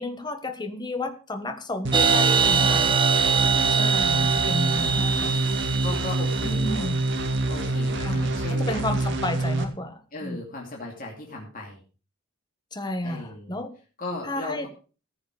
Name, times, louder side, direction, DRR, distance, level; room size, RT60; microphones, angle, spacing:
voice 1, 0.0-2.9 3.7-5.4 6.4-7.0 8.0-10.4 12.7-13.7 14.2-14.7, left 1 dB, 20° left, 8 dB, 1.4 m, -32 dB
sound 1, 1.8-9.6, right 2 dB, 60° right, 2.2 m, -26 dB
sound 2, 1.9-7.5, right 6 dB, 25° right, 0.9 m, -24 dB
voice 2, 3.4-3.7 4.7-5.4 5.8-6.9 7.5-8.8 10.1-11.8 13.0-13.6 14.0-14.7, left 2 dB, 40° left, -1 dB, 2.7 m, -37 dB
15.0 x 8.0 x 4.9 m, 0.36 s
head